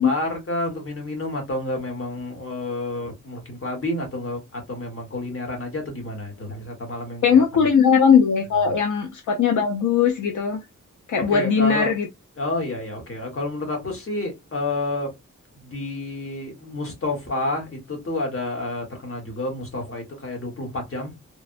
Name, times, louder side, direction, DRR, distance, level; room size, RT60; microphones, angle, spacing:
voice 1, 0.0-7.4 11.3-11.9 12.4-15.1 15.6-21.1, left 2 dB, 45° left, 1.3 m, -29 dB
voice 2, 7.2-10.6 11.1-12.1, left 6 dB, 70° left, 0.5 m, -19 dB
3.3 x 2.1 x 2.4 m
wide cardioid pair, 135°, 31 cm